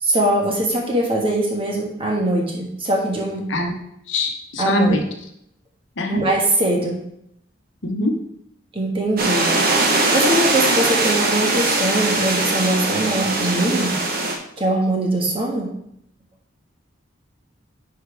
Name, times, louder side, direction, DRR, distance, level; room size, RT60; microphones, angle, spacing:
voice 1, 0.0-3.5 4.6-5.0 6.1-7.0 8.7-9.5 10.1-13.9 14.6-15.7, right 1 dB, 30° right, -1 dB, 1.5 m, -21 dB
voice 2, 4.1-5.0 6.0-6.2 7.8-8.1, left 2 dB, 70° left, 3 dB, 1.1 m, -22 dB
sound 1, 9.2-14.4, right 2 dB, 50° right, 1.1 m, -20 dB
10.0 x 4.6 x 3.4 m, 0.75 s
head